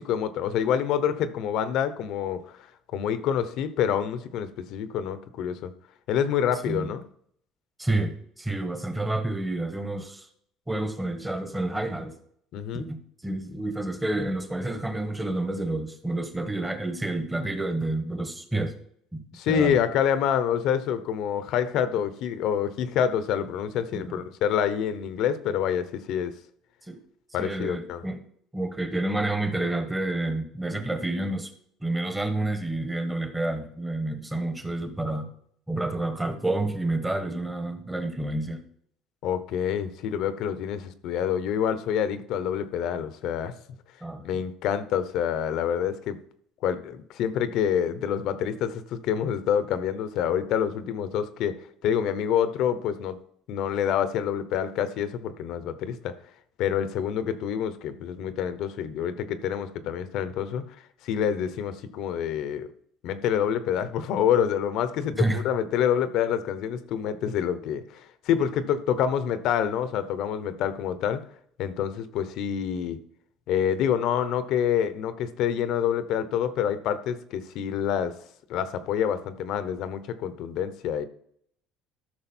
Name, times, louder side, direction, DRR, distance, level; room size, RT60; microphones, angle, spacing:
voice 1, 0.0-2.6 2.9-5.7 6.1-7.0 12.5-12.9 19.3-26.3 27.3-28.0 39.2-43.5 44.2-46.2 46.6-53.2 53.5-56.1 56.6-60.6 61.0-62.7 63.0-71.2 71.6-73.0 73.5-78.1 78.5-81.1, left 8 dB, 60° left, 12 dB, 1.0 m, -27 dB
voice 2, 7.8-10.3 10.7-12.1 12.7-18.7 19.1-19.8 23.9-24.2 26.9-27.0 27.4-28.2 28.5-31.5 31.8-35.3 35.7-38.6 44.0-44.3 65.2-65.4, right 2 dB, 10° right, 7 dB, 1.3 m, -29 dB
13.0 x 6.4 x 4.4 m, 0.66 s
cardioid pair, 150°, 0 cm